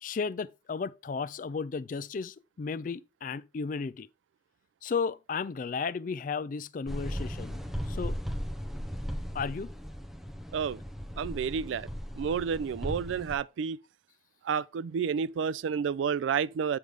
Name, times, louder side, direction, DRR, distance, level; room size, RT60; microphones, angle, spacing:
voice 1, 0.0-4.1 4.8-7.6 7.9-8.2 9.3-9.7, left 5 dB, 45° left, 0.3 m, -34 dB
sound 1, 6.9-13.4, equal, ahead, 0.8 m, -37 dB
voice 2, 11.2-11.9 12.2-13.8 14.4-16.8, right 6 dB, 85° right, 0.3 m, -30 dB
7.9 x 3.2 x 5.2 m
head